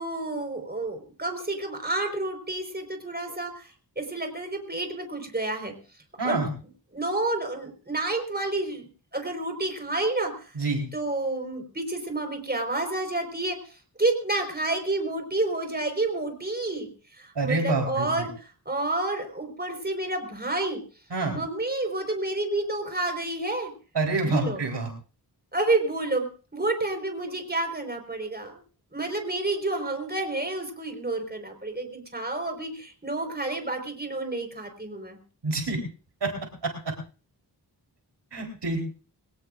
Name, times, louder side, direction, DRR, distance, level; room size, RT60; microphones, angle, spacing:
voice 1, 0.0-3.7 3.9-5.7 6.2-6.4 6.9-10.5 10.9-16.9 17.2-20.8 21.3-23.7 24.2-24.6 25.5-26.3 26.5-28.6 28.9-35.2, right 2 dB, 25° right, 5 dB, 4.8 m, -29 dB
voice 2, 6.2-6.5 10.5-10.9 17.4-18.3 21.1-21.4 23.9-24.9 35.4-35.8 36.2-36.3 36.6-36.9 38.3-38.8, right 3 dB, 75° right, 1 dB, 4.0 m, -27 dB
23.0 x 17.0 x 2.6 m, 0.37 s
cardioid pair, 55°, 41 cm